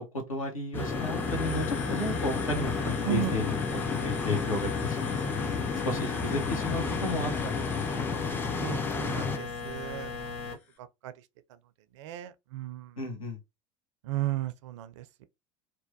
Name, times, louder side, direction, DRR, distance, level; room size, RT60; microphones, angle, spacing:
voice 1, 0.0-5.4 5.8-8.0 13.0-13.4, left 2 dB, 80° left, 0.8 m, -34 dB
sound 1, 0.7-9.4, left 5 dB, 10° left, 0.3 m, -32 dB
sound 2, 0.8-10.5, left 4 dB, 35° left, 1.1 m, -37 dB
voice 2, 3.0-3.4 8.5-10.6 11.0-11.1 12.0-12.9 14.0-15.2, right 14 dB, 60° right, 0.4 m, -35 dB
3.0 x 2.1 x 2.6 m
figure-of-eight pair, 70°, 17 cm